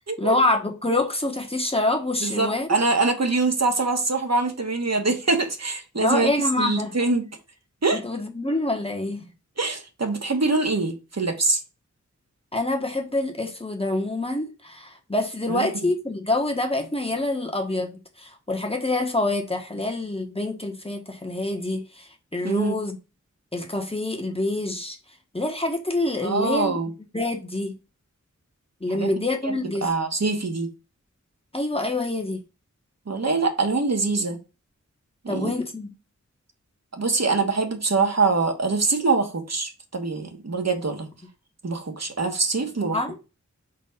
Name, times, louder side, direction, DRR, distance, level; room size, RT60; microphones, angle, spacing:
voice 1, 0.2-2.7 5.9-6.9 7.9-9.3 12.5-23.0 23.5-25.0 25.3-26.8 27.1-27.7 28.8-29.9 31.5-32.4 35.3-35.9 42.9-43.2, left 2 dB, 20° left, 1.3 m, -26 dB
voice 2, 2.2-6.3 6.6-7.3 7.8-8.0 9.6-11.6 15.5-15.7 22.4-22.8 26.2-26.9 28.9-29.1 29.4-29.5 29.8-30.7 33.1-34.4 35.2-35.5 36.9-41.1 41.6-43.0, right 3 dB, 60° right, 1.4 m, -24 dB
4.6 x 4.1 x 5.7 m
wide cardioid pair, 65°, 30 cm